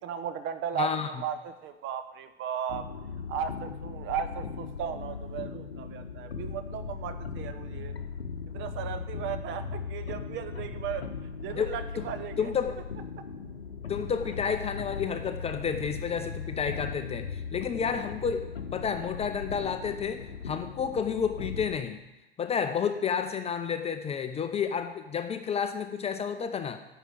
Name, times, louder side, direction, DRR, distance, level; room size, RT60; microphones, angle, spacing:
voice 1, 0.0-2.9 3.3-8.0 8.5-11.1 11.4-12.5 13.2-13.3, right 8 dB, 40° right, 9 dB, 0.9 m, -36 dB
voice 2, 0.8-1.1 11.5-12.0 12.4-12.8 13.9-22.0 22.4-26.8, left 7 dB, 20° left, 8 dB, 0.6 m, -31 dB
sound 1, 2.7-21.8, left 5 dB, 80° left, 0.8 m, -38 dB
9.9 x 4.9 x 7.6 m, 0.99 s
figure-of-eight pair, 75°, 30 cm